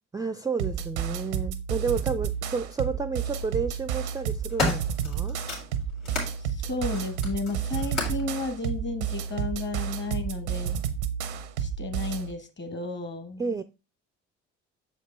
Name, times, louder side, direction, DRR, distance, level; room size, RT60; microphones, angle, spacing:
voice 1, 0.1-5.4 13.4-13.6, right 5 dB, 10° right, 0.3 m, -31 dB
sound 1, 0.6-12.3, right 8 dB, 90° right, 0.6 m, -31 dB
sound 2, 1.9-2.1 3.1-3.5 4.0-6.3 6.8-8.3 9.2-9.3, left 3 dB, 80° left, 2.6 m, -33 dB
voice 2, 6.4-10.8 11.6-13.6, left 3 dB, 35° left, 1.4 m, -33 dB
6.6 x 5.0 x 3.2 m
hypercardioid pair, 55°, 33 cm